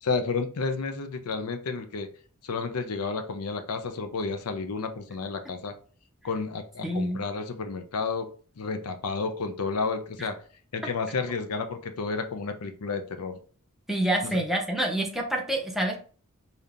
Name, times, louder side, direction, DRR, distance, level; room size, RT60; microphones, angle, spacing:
voice 1, 0.0-2.1 2.4-5.7 6.2-8.3 8.6-10.4 10.7-13.4 14.2-14.4, left 4 dB, 75° left, 7 dB, 0.6 m, -31 dB
voice 2, 6.8-7.2 10.2-10.3 13.9-16.0, right 1 dB, ahead, -1 dB, 0.7 m, -27 dB
5.1 x 2.8 x 2.5 m, 0.41 s
head